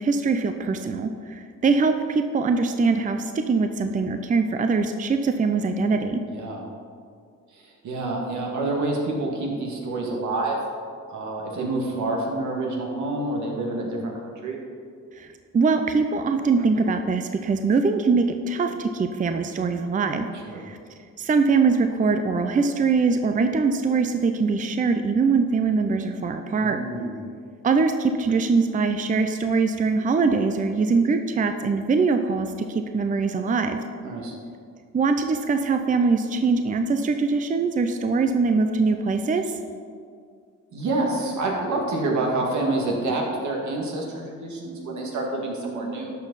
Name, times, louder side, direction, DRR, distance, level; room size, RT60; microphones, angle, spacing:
voice 1, 0.0-6.2 15.2-20.3 20.5-20.8 21.2-26.8 27.6-33.8 34.9-39.5, right 4 dB, 25° right, 6 dB, 0.5 m, -22 dB
voice 2, 6.3-6.6 7.5-10.6 11.1-14.6 20.4-20.6 26.6-27.1 34.0-34.3 40.7-46.1, right 2 dB, 70° right, -1 dB, 2.1 m, -27 dB
12.0 x 6.1 x 4.1 m, 2.2 s
cardioid pair, 90°, 30 cm